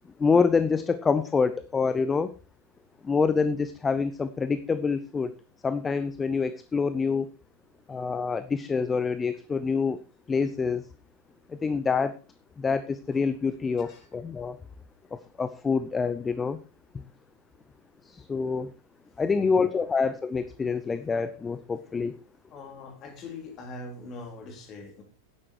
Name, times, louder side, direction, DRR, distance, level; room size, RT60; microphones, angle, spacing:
voice 1, 0.2-2.3 3.0-5.3 5.6-7.3 7.9-10.0 10.3-10.8 11.5-12.2 12.6-14.6 15.1-16.6 18.0-18.7 19.2-22.2, left 5 dB, 15° left, 13 dB, 0.7 m, -26 dB
voice 2, 13.8-14.1 22.5-25.0, left 3 dB, 30° left, 3 dB, 3.8 m, -42 dB
11.0 x 9.9 x 4.6 m, 0.34 s
figure-of-eight pair, 90°, 0 cm